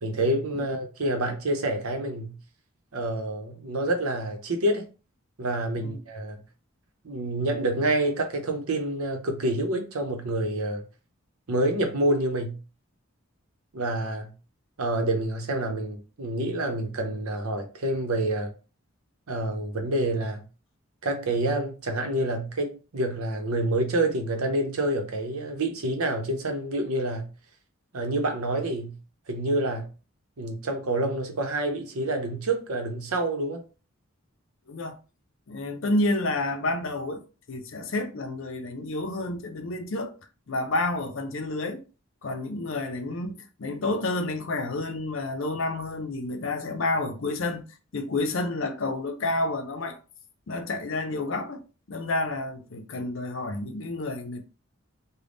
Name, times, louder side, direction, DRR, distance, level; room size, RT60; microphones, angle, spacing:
voice 1, 0.0-2.3 2.9-4.9 5.4-6.4 7.0-10.8 11.5-12.6 13.7-14.3 14.8-18.5 19.3-20.4 21.0-27.3 27.9-29.0 29.3-29.9 30.4-33.6, right 1 dB, 85° right, 0.8 m, -27 dB
voice 2, 34.7-35.0 35.5-40.1 40.5-41.8 42.2-47.7 47.9-50.0 50.5-51.6 51.9-54.4, left 2 dB, 60° left, 0.6 m, -30 dB
3.5 x 2.2 x 3.8 m
head